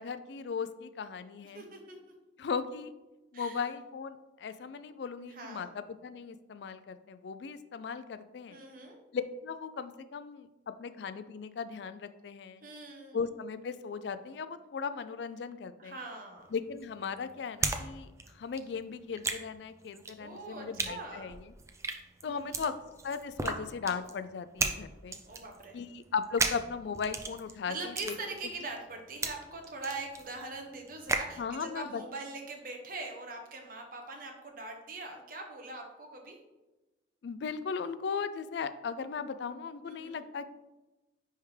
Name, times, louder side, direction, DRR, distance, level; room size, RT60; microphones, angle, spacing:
voice 1, 0.0-1.6 2.4-2.9 3.3-8.6 9.1-10.5 10.8-12.6 13.1-16.0 16.5-21.5 22.2-22.7 23.0-25.2 25.7-28.2 31.4-32.0 37.2-40.4, left 5 dB, 65° left, 12 dB, 0.3 m, -37 dB
voice 2, 1.5-2.0 3.3-3.7 5.3-5.7 8.5-9.0 12.6-13.2 15.8-16.5 20.2-21.3 22.2-22.6 25.2-25.8 27.7-36.4 39.9-40.2, right 3 dB, 45° right, 2 dB, 1.0 m, -42 dB
sound 1, 16.4-17.8 18.1-31.4, right 3 dB, 15° right, 0.4 m, -36 dB
9.9 x 3.5 x 3.3 m, 1.1 s
head